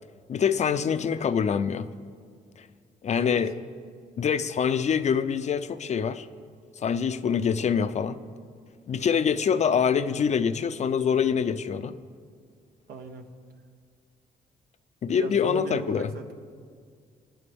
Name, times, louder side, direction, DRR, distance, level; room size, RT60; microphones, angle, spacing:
voice 1, 0.3-1.9 2.6-2.7 3.0-3.6 4.2-6.3 6.8-8.2 8.9-11.9 15.0-16.1, left 7 dB, 50° left, 12 dB, 0.6 m, -25 dB
voice 2, 12.9-13.3 15.1-16.3, right 5 dB, 80° right, 5 dB, 1.3 m, -37 dB
26.0 x 9.2 x 3.6 m, 2.1 s
cardioid pair, 80°, 16 cm